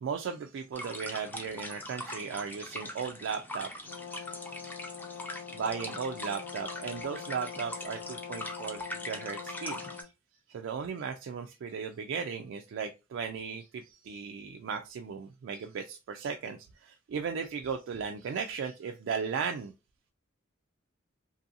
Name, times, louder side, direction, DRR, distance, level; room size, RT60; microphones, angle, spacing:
voice 1, 0.0-3.7 5.5-10.1 10.5-19.7, right 6 dB, 65° right, 4 dB, 0.3 m, -36 dB
sound 1, 0.7-10.0, left 1 dB, 10° left, 0.4 m, -42 dB
Brass instrument, 3.8-10.1, left 8 dB, 75° left, 0.3 m, -44 dB
2.6 x 2.6 x 2.5 m, 0.27 s
head